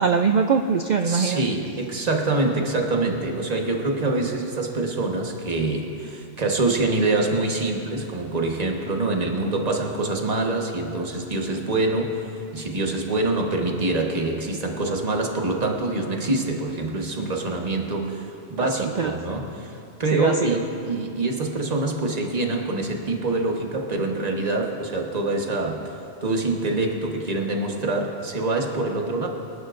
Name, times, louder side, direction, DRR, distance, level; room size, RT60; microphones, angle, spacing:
voice 1, 0.0-1.4 18.6-19.2 20.1-20.6, right 5 dB, 55° right, 5 dB, 0.5 m, -22 dB
voice 2, 1.0-12.2 12.5-25.9 26.2-29.3, right 2 dB, 35° right, 1 dB, 1.4 m, -25 dB
25.0 x 12.0 x 2.6 m, 2.7 s
omnidirectional pair, 1.1 m